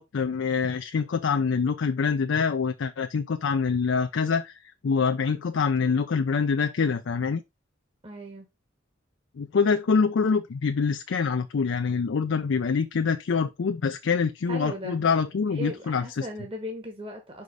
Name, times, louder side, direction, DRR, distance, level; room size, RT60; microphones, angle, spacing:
voice 1, 0.0-7.4 9.4-16.3, left 5 dB, 65° left, 0.4 m, -25 dB
voice 2, 8.0-8.5 14.5-15.0 15.4-17.4, equal, 30° right, 1.1 m, -37 dB
5.1 x 4.9 x 3.9 m
head